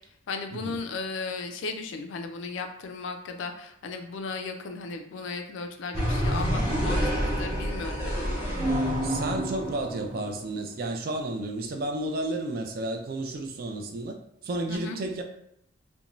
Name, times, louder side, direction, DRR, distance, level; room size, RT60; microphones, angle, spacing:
voice 1, 0.3-8.3 14.7-15.0, left 4 dB, 70° left, 6 dB, 0.3 m, -36 dB
sound 1, 5.9-10.4, equal, 10° right, 0.9 m, -28 dB
voice 2, 9.0-14.2 14.4-15.2, right 2 dB, 45° right, 4 dB, 0.3 m, -32 dB
2.5 x 2.2 x 3.0 m, 0.75 s
head